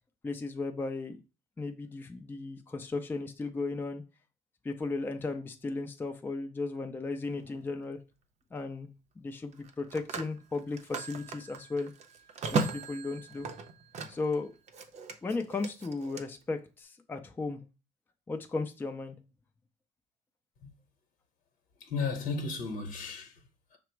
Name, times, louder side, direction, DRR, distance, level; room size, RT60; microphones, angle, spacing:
voice 1, 0.2-1.2 1.6-4.0 4.6-8.0 8.5-8.9 9.2-11.9 12.5-13.5 14.1-14.5 15.2-17.6 18.3-19.2, left 3 dB, 15° left, 0.4 m, -35 dB
Telephone, 7.3-7.6 9.5-14.4 14.7-16.2, right 4 dB, 45° right, 0.6 m, -37 dB
voice 2, 21.8-23.8, left 4 dB, 65° left, 0.9 m, -35 dB
5.9 x 2.0 x 4.4 m
cardioid pair, 130°, 15 cm